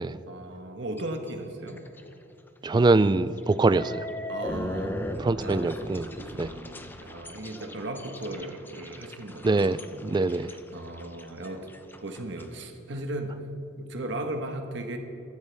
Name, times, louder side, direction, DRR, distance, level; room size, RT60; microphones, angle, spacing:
voice 1, 0.3-1.8 4.3-5.0 5.4-9.8 10.7-11.7 12.0-13.4 13.8-15.0, right 1 dB, 70° right, 4 dB, 1.4 m, -36 dB
sound 1, 1.0-1.3 1.7-2.1 2.5-2.6 3.4-12.5, left 1 dB, 10° left, 0.7 m, -38 dB
voice 2, 2.6-4.1 5.2-6.0 6.4-6.5 9.4-10.5, right 3 dB, 25° right, 15 dB, 0.3 m, -23 dB
24.0 x 12.5 x 3.5 m, 2.6 s
head